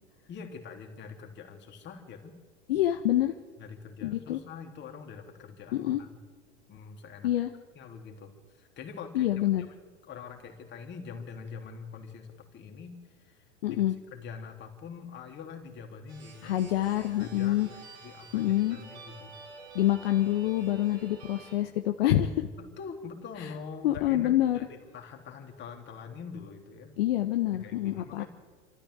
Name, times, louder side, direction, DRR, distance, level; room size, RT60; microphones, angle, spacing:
voice 1, 0.3-2.3 3.6-6.2 6.7-7.4 7.8-9.3 10.1-13.8 14.1-16.6 17.2-19.4 20.1-20.2 22.6-26.9 27.5-28.3, left 5 dB, 30° left, 3 dB, 3.5 m, -44 dB
voice 2, 2.7-3.3 4.0-4.4 5.7-6.0 7.2-7.5 9.1-9.6 13.6-13.9 16.4-17.7 18.3-18.8 19.7-22.5 23.4-23.5 23.8-24.6 27.0-28.2, left 13 dB, 55° left, 6 dB, 1.2 m, -26 dB
sound 1, 16.1-21.6, right 4 dB, 65° right, 5.8 m, -50 dB
27.5 x 13.5 x 8.1 m, 1.5 s
figure-of-eight pair, 85°, 34 cm